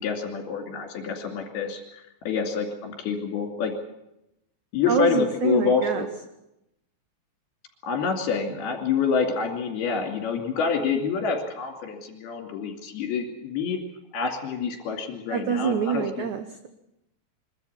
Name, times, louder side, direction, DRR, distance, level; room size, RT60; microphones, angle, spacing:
voice 1, 0.0-3.7 4.7-6.1 7.8-13.8 14.1-16.3, left 5 dB, 70° left, 4 dB, 4.6 m, -27 dB
voice 2, 4.9-6.1 15.3-16.7, right 7 dB, 80° right, 8 dB, 1.7 m, -26 dB
24.0 x 13.0 x 9.9 m, 0.87 s
omnidirectional pair, 4.9 m